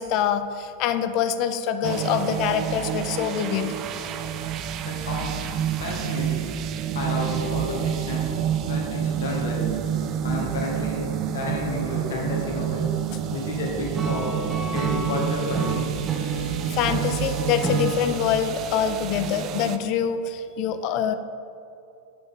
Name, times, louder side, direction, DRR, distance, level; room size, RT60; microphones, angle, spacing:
voice 1, 0.0-3.7 16.7-21.1, left 8 dB, 40° left, 10 dB, 0.5 m, -25 dB
sound 1, 1.8-19.8, right 9 dB, 35° right, 0.4 m, -29 dB
voice 2, 4.8-5.5 5.8-6.5 6.9-8.3 8.7-9.7 10.2-12.9 13.3-14.3 14.7-15.9, left 2 dB, 60° left, -1 dB, 1.8 m, -31 dB
Acoustic guitar / Strum, 13.9-18.0, right 5 dB, 20° right, 1.1 m, -28 dB
8.6 x 7.7 x 3.6 m, 2.6 s
figure-of-eight pair, 90°, 0 cm